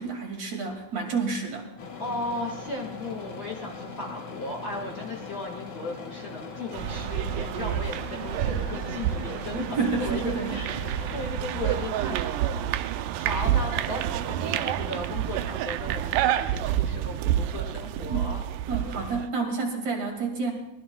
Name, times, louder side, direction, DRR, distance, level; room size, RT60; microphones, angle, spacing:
voice 1, 0.0-1.7 9.7-10.6 18.1-18.2 18.7-20.5, right 4 dB, 60° right, 1 dB, 3.5 m, -29 dB
sound 1, 1.8-11.3, left 4 dB, 60° left, 2.6 m, -40 dB
voice 2, 2.0-10.7 11.1-12.9 13.2-18.4, left 2 dB, 40° left, -1 dB, 1.9 m, -36 dB
sound 2, 6.7-19.3, right 11 dB, 90° right, 2.2 m, -29 dB
23.0 x 19.5 x 2.3 m, 0.94 s
omnidirectional pair, 3.6 m